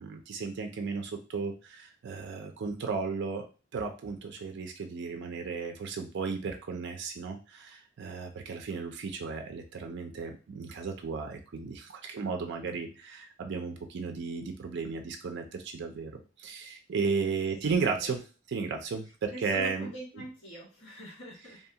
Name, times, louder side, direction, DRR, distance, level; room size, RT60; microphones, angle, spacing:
voice 1, 0.0-3.5 3.7-19.9, right 5 dB, 60° right, 4 dB, 0.4 m, -34 dB
voice 2, 19.3-21.6, right 1 dB, 85° left, -8 dB, 1.6 m, -44 dB
2.7 x 2.3 x 2.7 m, 0.33 s
head